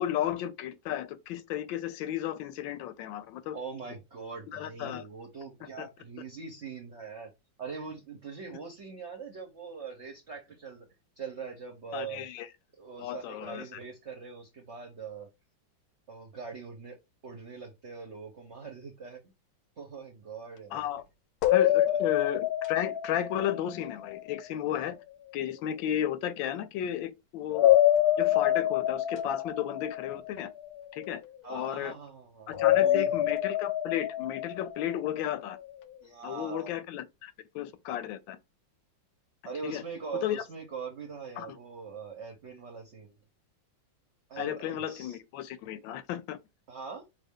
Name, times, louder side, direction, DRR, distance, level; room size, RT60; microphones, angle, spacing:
voice 1, 0.0-3.6 4.5-5.0 5.8-5.9 11.9-12.5 13.0-13.8 20.7-21.0 21.5-25.0 25.3-27.7 28.2-30.5 30.9-31.2 31.5-31.9 32.5-35.6 36.2-38.4 39.6-39.8 40.2-40.4 41.4-41.6 44.4-46.4, left 11 dB, 85° left, 1.3 m, -34 dB
voice 2, 3.5-7.3 7.6-10.9 11.2-12.3 12.8-15.3 16.1-17.0 17.2-19.2 19.8-20.9 21.6-22.0 31.4-33.3 36.0-36.7 39.4-43.2 44.3-45.2 46.7-47.0, right 5 dB, 50° right, 0.9 m, -42 dB
sound 1, 21.4-24.4 27.5-30.8 32.5-35.3, left 12 dB, 70° left, 0.9 m, -26 dB
5.4 x 2.5 x 3.6 m
omnidirectional pair, 2.0 m